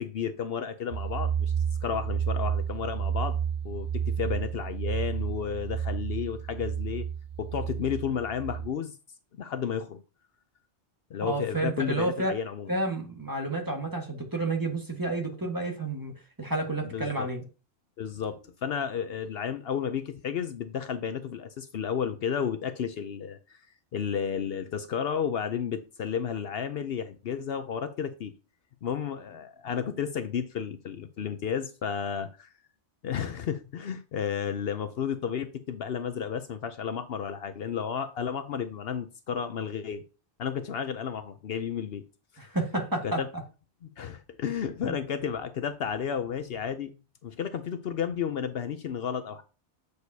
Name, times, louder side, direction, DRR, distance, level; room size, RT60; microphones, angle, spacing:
voice 1, 0.0-1.5 1.8-3.4 3.6-7.1 7.4-8.9 9.4-10.0 11.1-12.7 16.9-17.3 18.0-23.6 23.9-28.3 28.8-32.5 33.0-40.0 40.4-42.0 42.3-42.5 43.0-43.3 43.8-46.9 47.2-49.4, left 7 dB, 65° left, 0.8 m, -32 dB
sound 1, 0.9-8.7, right 8 dB, 65° right, 0.3 m, -31 dB
voice 2, 11.2-12.3 12.7-16.1 16.4-17.4 42.4-43.2 44.9-45.0, right 2 dB, 20° right, 1.6 m, -30 dB
8.0 x 6.7 x 2.8 m
omnidirectional pair, 1.1 m